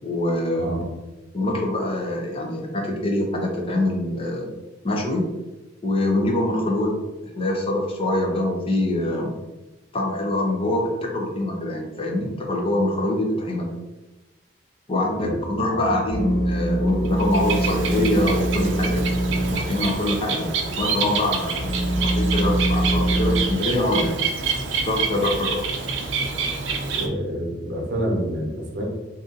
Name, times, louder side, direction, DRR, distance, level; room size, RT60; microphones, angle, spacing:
voice 1, 0.0-0.8 1.3-4.5 4.8-5.3 5.8-9.3 9.9-13.7 14.9-19.0 19.5-20.5 20.8-21.7 22.1-24.2 24.8-25.6, left 1 dB, 30° left, -1 dB, 0.6 m, -24 dB
voice 2, 15.1-15.9 26.9-28.8, equal, 60° right, -1 dB, 0.8 m, -28 dB
sound 1, 16.1-19.6 19.9-20.0 20.6-23.4, right 1 dB, 75° left, 1.3 m, -24 dB
Bird, 17.1-27.1, right 5 dB, 75° right, 0.5 m, -27 dB
2.6 x 2.6 x 3.7 m, 1.1 s
head